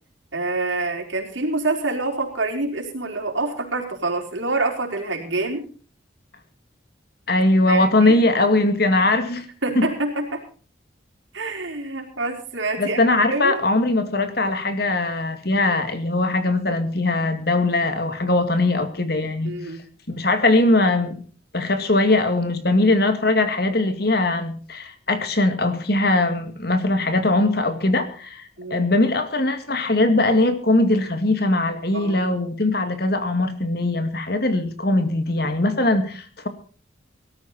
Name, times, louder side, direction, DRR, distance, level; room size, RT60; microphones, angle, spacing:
voice 1, 0.3-5.7 7.7-8.2 9.6-10.4 11.3-13.6 19.4-19.8 28.6-28.9 31.9-32.2, right 2 dB, 85° right, 2 dB, 4.5 m, -26 dB
voice 2, 7.3-9.5 9.8-9.9 12.8-19.6 20.1-21.2 21.5-36.5, left 2 dB, 55° left, 9 dB, 2.1 m, -20 dB
18.5 x 13.5 x 4.2 m, 0.41 s
head